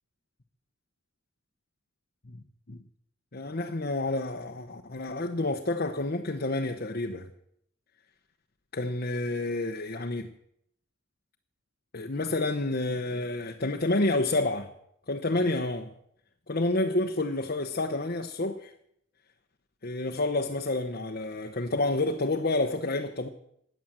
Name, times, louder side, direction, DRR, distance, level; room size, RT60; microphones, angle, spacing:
voice 1, 3.3-7.3 8.7-10.3 11.9-14.7 15.1-15.9 16.5-18.7 19.8-23.3, left 2 dB, 50° left, 1.1 m, -29 dB
17.0 x 10.5 x 7.6 m
head